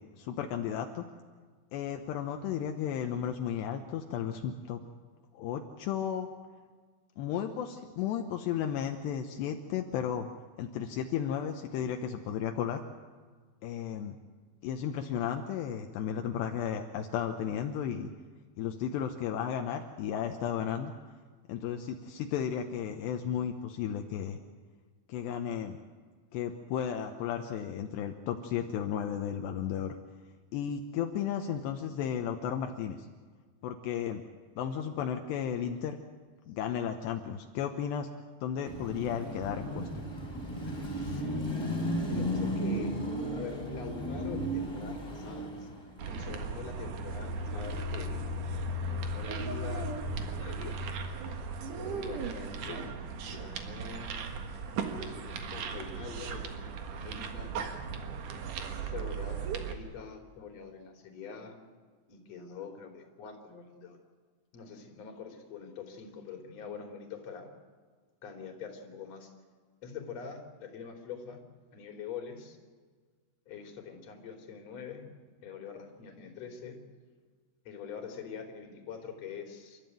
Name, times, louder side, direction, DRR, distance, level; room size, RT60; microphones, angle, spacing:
voice 1, 0.2-1.0 1.7-4.8 5.3-6.3 7.2-10.3 10.6-12.8 13.6-14.2 14.6-18.1 18.6-20.9 21.5-24.4 25.1-25.8 26.3-30.0 30.5-33.1 33.6-34.2 34.6-36.0 36.5-38.1 38.4-39.9, left 9 dB, 75° left, 5 dB, 3.0 m, -34 dB
Car passing by / Traffic noise roadway noise / Engine, 38.7-46.0, equal, 5° left, 3.5 m, -34 dB
voice 2, 40.9-41.5 42.1-42.9 43.3-45.7 46.1-48.4 48.9-49.9 50.3-51.0 51.7-52.9 53.2-54.2 54.9-57.5 58.7-61.5 62.1-64.0 64.5-67.5 68.2-69.3 69.8-71.4 71.7-72.6 73.5-75.0 75.4-76.8 77.7-79.8, left 6 dB, 40° left, 3 dB, 3.9 m, -44 dB
sound 1, 46.0-59.7, right 3 dB, 55° right, 2.6 m, -36 dB
30.0 x 13.5 x 9.2 m, 1.5 s
omnidirectional pair, 5.2 m